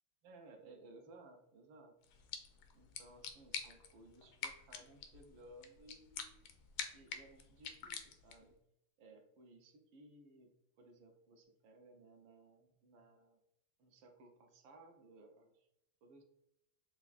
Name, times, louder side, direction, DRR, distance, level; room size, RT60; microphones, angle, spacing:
voice 1, 0.2-2.0 2.7-8.6 9.0-10.5 10.8-13.4 13.8-15.7 16.0-16.2, right 2 dB, 75° right, 3 dB, 1.4 m, -60 dB
sound 1, 2.0-8.5, left 7 dB, 80° left, 1.4 m, -48 dB
6.8 x 2.4 x 2.4 m, 0.83 s
omnidirectional pair, 2.3 m